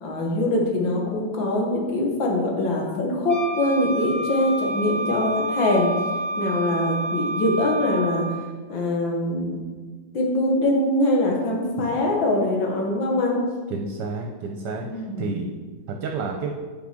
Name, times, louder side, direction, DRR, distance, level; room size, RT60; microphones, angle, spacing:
voice 1, 0.0-5.9 6.4-8.2 8.7-9.6 10.1-13.4 14.9-15.3, left 1 dB, 75° left, -1 dB, 2.2 m, -23 dB
Wind instrument woodwind instrument, 3.3-8.4, right 1 dB, 25° left, 2.3 m, -29 dB
voice 2, 13.7-15.5 15.9-16.5, right 4 dB, 70° right, 2 dB, 1.3 m, -30 dB
7.3 x 6.0 x 5.1 m, 1.4 s
omnidirectional pair, 2.1 m